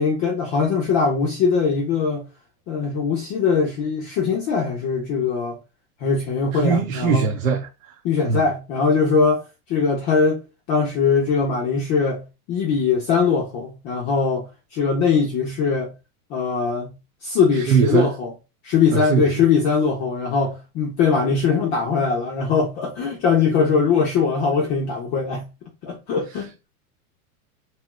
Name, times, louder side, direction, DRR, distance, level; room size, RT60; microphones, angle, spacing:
voice 1, 0.0-2.2 2.7-5.6 6.0-7.3 8.0-9.4 9.7-10.4 10.7-12.2 12.5-14.5 14.7-15.9 16.3-16.9 17.2-18.3 18.6-25.5 25.8-26.5, left 5 dB, 25° left, 0.4 m, -21 dB
voice 2, 6.5-7.7 8.3-8.4 17.5-18.1 18.9-19.3, right 6 dB, 85° right, 1.0 m, -20 dB
2.9 x 2.3 x 3.0 m
supercardioid pair, 140°, 44 cm